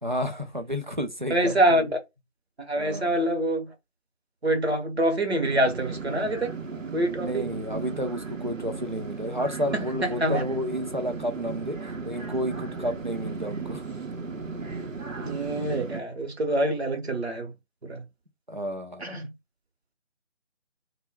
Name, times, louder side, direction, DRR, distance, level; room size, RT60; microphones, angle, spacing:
voice 1, 0.0-1.9 2.8-3.2 7.2-13.8 18.5-19.2, equal, 40° right, 0.5 m, -31 dB
voice 2, 1.3-1.9 2.6-3.7 4.4-6.5 6.9-7.5 9.7-9.8 10.2-10.4 15.2-17.5 17.8-18.0 19.0-19.3, right 1 dB, 55° right, 0.9 m, -25 dB
sound 1, 5.4-16.0, right 4 dB, 90° right, 0.7 m, -36 dB
2.2 x 2.1 x 3.5 m
figure-of-eight pair, 160°, 38 cm